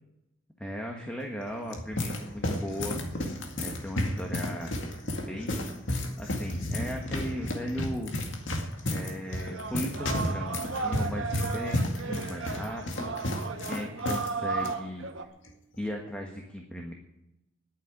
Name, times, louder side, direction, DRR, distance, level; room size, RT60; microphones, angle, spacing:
voice 1, 0.6-3.0 3.6-4.8 5.1-5.7 6.2-8.1 8.9-15.3 15.8-16.9, equal, 5° left, 1 dB, 1.5 m, -37 dB
sound 1, 1.4-14.3 14.6-14.7 15.4-15.7, left 1 dB, 70° left, 2.1 m, -32 dB
sound 2, 8.6-8.7 9.0-15.2, right 4 dB, 75° right, 1.2 m, -35 dB
11.0 x 9.4 x 9.7 m, 0.88 s
head